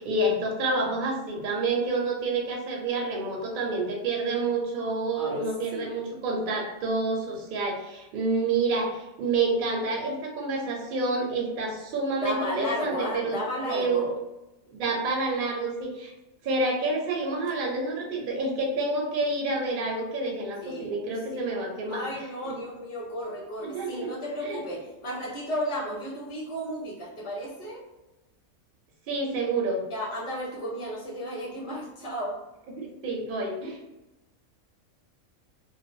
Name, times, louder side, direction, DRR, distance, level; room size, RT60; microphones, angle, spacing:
voice 1, 0.0-14.1 14.7-16.1 16.4-22.0 22.4-22.5 23.6-24.1 24.4-24.6 29.1-29.8 32.7-33.8, right 2 dB, 55° right, 0 dB, 0.6 m, -28 dB
voice 2, 5.2-6.0 12.2-14.0 20.6-20.9 21.3-21.4 21.9-27.8 29.9-32.4, equal, 25° left, -5 dB, 0.8 m, -33 dB
2.4 x 2.2 x 2.6 m, 1.0 s
omnidirectional pair, 1.4 m